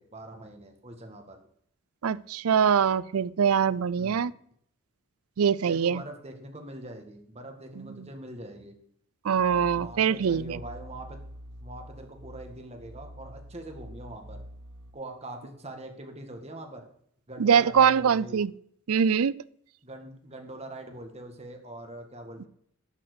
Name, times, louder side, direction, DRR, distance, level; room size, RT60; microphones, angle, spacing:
voice 1, 0.0-1.4 4.0-4.3 5.7-8.8 9.7-11.2 11.6-14.4 14.9-16.9 17.3-18.4 19.8-22.5, right 1 dB, 30° right, 1.9 m, -43 dB
voice 2, 2.0-4.3 5.4-6.0 7.8-7.9 9.2-10.6 17.4-18.5 18.9-19.3, right 7 dB, 80° right, 0.4 m, -23 dB
sound 1, 9.3-14.9, equal, 60° right, 2.4 m, -46 dB
11.5 x 5.9 x 8.2 m
head